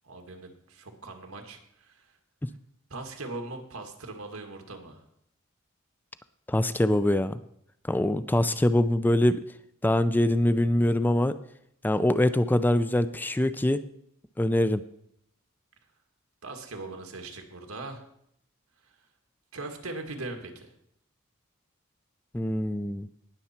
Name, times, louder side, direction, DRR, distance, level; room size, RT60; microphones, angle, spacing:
voice 1, 0.0-2.2 2.9-5.0 16.4-18.0 18.8-19.0 19.5-20.7, right 2 dB, 90° right, 4 dB, 1.9 m, -40 dB
voice 2, 6.5-7.4 7.9-9.4 9.8-11.3 11.8-13.8 14.4-14.8 22.3-23.1, left 1 dB, 10° left, 12 dB, 0.4 m, -24 dB
19.0 x 6.9 x 4.4 m, 0.74 s
head